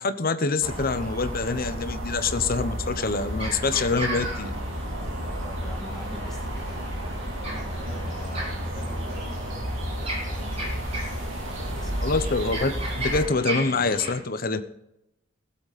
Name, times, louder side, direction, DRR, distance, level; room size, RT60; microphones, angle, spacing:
voice 1, 0.0-4.5 12.0-14.6, left 3 dB, 50° left, 10 dB, 1.0 m, -26 dB
sound 1, 0.6-13.3, equal, 75° right, 3.1 m, -32 dB
sound 2, 2.5-14.1, right 1 dB, 30° right, 3.4 m, -37 dB
voice 2, 5.4-11.1 11.5-11.9, equal, ahead, -3 dB, 3.0 m, -46 dB
19.5 x 7.8 x 4.3 m, 0.85 s
head